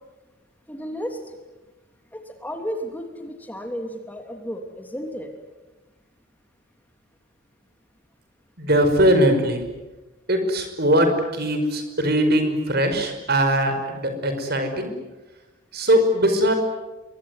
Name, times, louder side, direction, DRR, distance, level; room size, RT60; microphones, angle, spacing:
voice 1, 0.7-1.2 2.1-5.3, equal, 10° left, 4 dB, 3.0 m, -33 dB
voice 2, 8.6-9.6 10.3-14.9 15.7-16.5, equal, 50° right, 7 dB, 5.2 m, -20 dB
26.5 x 23.0 x 9.6 m, 1.1 s
head